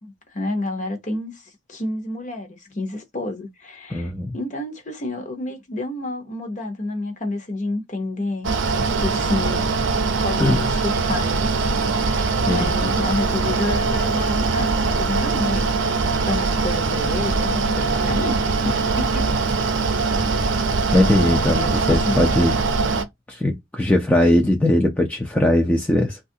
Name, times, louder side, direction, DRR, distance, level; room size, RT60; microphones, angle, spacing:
voice 1, 0.0-9.7 10.2-11.5 12.0-15.7 16.0-19.3 19.9-20.2 21.5-22.2, left 2 dB, 35° left, 0.7 m, -29 dB
voice 2, 3.9-4.4 10.4-10.6 12.5-12.7 20.9-22.6 22.9-23.0 23.3-26.2, left 1 dB, 5° left, 0.4 m, -19 dB
Mechanical fan, 8.4-23.0, right 4 dB, 60° right, 0.6 m, -22 dB
3.3 x 2.3 x 2.7 m
head